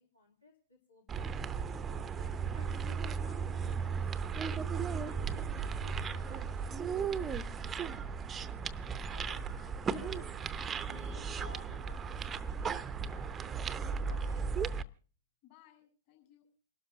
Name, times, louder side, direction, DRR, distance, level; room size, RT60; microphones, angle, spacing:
voice 1, 0.0-1.3 2.1-4.5 5.1-8.0 9.1-9.5 9.9-10.3 10.7-13.8 14.1-14.4, left 2 dB, 85° left, -2 dB, 2.8 m, -57 dB
sound 1, 1.1-14.8, right 6 dB, 15° right, 0.6 m, -36 dB
voice 2, 9.4-10.2 13.8-14.4 15.4-16.5, left 13 dB, 45° left, 2 dB, 6.9 m, -60 dB
28.5 x 12.5 x 2.6 m, 0.41 s
figure-of-eight pair, 105°, 0 cm